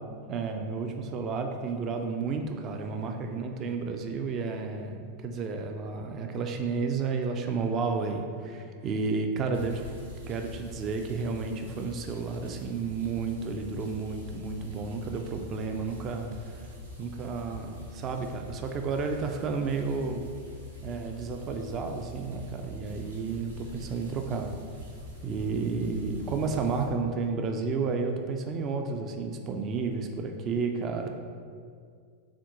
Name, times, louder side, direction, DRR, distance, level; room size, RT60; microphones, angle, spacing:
voice 1, 0.3-9.8 10.3-16.5 17.0-20.2 20.8-24.5 25.2-31.1, right 4 dB, 30° right, 5 dB, 0.3 m, -32 dB
Trickling from within plumbing, 9.5-26.8, left 1 dB, 75° right, 0.9 m, -45 dB
4.1 x 3.8 x 2.9 m, 2.1 s
figure-of-eight pair, 90°, 0 cm